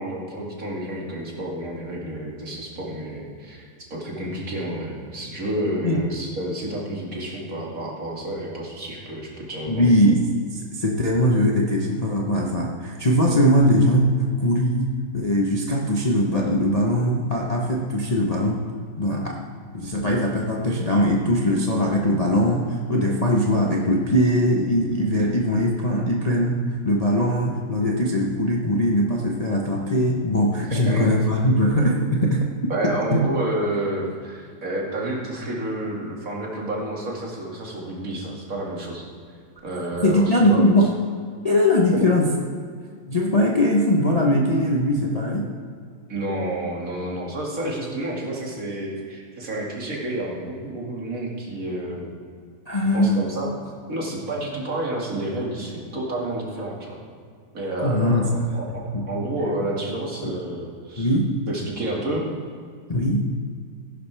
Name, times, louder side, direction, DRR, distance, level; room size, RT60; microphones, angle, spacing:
voice 1, 0.0-3.7 3.9-9.9 30.7-31.1 32.7-39.1 39.6-40.9 41.9-42.1 46.1-52.1 52.9-53.6 53.9-57.0 57.5-61.1 61.5-62.3, right 1 dB, 55° right, -2 dB, 2.6 m, -30 dB
voice 2, 9.7-10.2 10.5-14.1 14.4-14.9 15.1-18.6 19.0-19.4 19.7-26.6 26.8-32.5 33.1-33.2 40.0-40.9 41.4-42.3 43.1-45.5 52.7-53.3 57.8-58.5 58.9-59.0 60.2-60.3 61.0-61.3 62.9-63.2, equal, 30° left, -2 dB, 0.8 m, -21 dB
15.5 x 11.5 x 3.4 m, 2.1 s
omnidirectional pair, 1.8 m